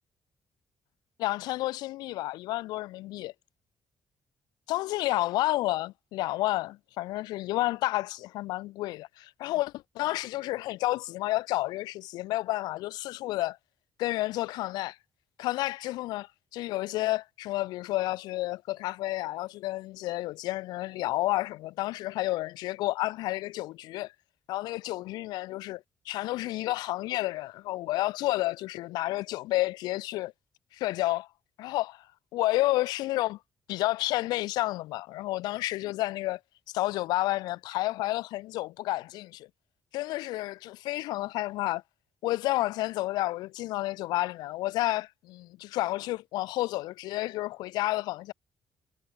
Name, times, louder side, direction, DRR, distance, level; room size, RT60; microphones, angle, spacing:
voice 1, 1.2-3.3 4.7-13.6 14.0-15.0 15.4-24.1 24.5-30.3 30.7-31.3 31.6-32.0 32.3-33.4 33.7-36.4 36.7-39.5 39.9-41.8 42.2-48.3, left 18 dB, 90° left, 1.1 m, -30 dB
cardioid pair, 75°, 7 cm